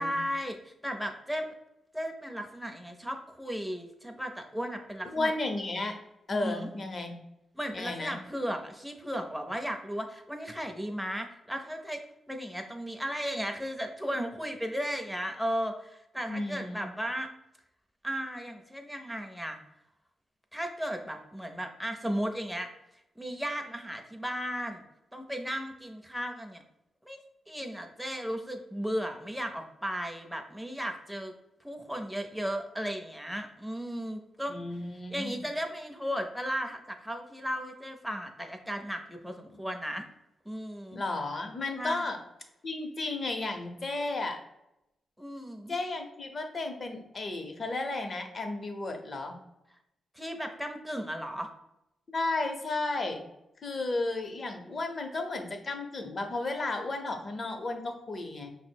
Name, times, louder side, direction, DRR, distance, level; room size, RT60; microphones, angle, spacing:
voice 1, 0.0-1.5 1.9-5.3 6.3-6.7 7.5-12.0 12.3-17.3 18.0-19.6 20.5-22.7 23.2-24.8 25.1-26.6 27.1-27.2 27.5-31.3 31.6-34.6 35.1-40.0 40.4-41.0 41.8-42.0 45.2-45.7 50.2-51.5, equal, ahead, 4 dB, 0.6 m, -35 dB
voice 2, 5.0-6.0 6.3-7.2 7.7-8.2 16.3-16.9 34.5-35.4 40.9-42.2 42.6-44.4 45.7-49.4 52.1-53.2 53.6-58.5, left 2 dB, 35° left, 4 dB, 0.7 m, -33 dB
5.7 x 2.0 x 4.4 m, 0.86 s
cardioid pair, 120°, 0 cm